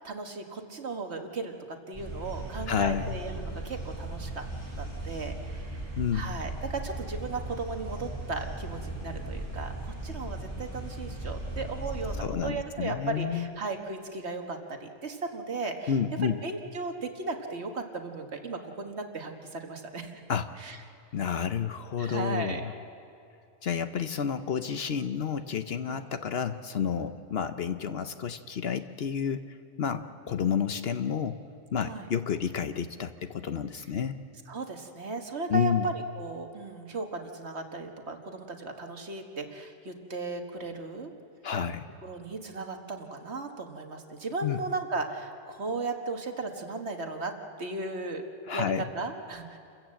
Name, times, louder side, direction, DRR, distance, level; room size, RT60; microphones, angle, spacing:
voice 1, 0.0-4.4 4.8-15.9 16.2-20.2 20.6-20.8 22.0-22.6 25.8-26.0 31.8-32.1 34.5-41.1 42.0-48.2 48.5-48.7 48.9-49.6, right 3 dB, 55° right, 5 dB, 1.8 m, -36 dB
sound 1, 1.9-12.2, right 2 dB, 15° right, 6.5 m, -37 dB
voice 2, 2.7-3.1 6.0-6.4 12.2-13.5 15.9-16.4 20.3-20.5 21.1-22.7 23.6-31.4 31.7-34.2 35.5-35.9 41.4-41.9 44.4-44.6 48.5-48.9, left 7 dB, 55° left, 10 dB, 0.9 m, -30 dB
28.5 x 15.5 x 7.6 m, 2.6 s
omnidirectional pair, 1.3 m